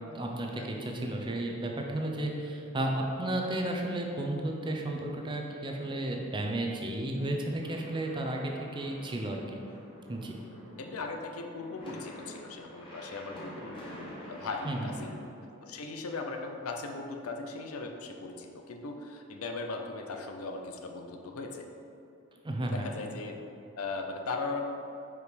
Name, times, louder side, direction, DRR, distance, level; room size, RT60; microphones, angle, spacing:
voice 1, 0.1-9.6 10.1-10.4 14.6-14.9 22.4-22.9, right 1 dB, 20° right, 1 dB, 0.6 m, -33 dB
sound 1, 7.4-15.1, left 1 dB, 25° left, 1.4 m, -48 dB
voice 2, 10.8-13.8 14.3-15.2 15.6-21.7 22.6-23.4 23.8-24.6, left 3 dB, 85° left, 4 dB, 0.6 m, -38 dB
4.9 x 4.7 x 5.1 m, 2.8 s
head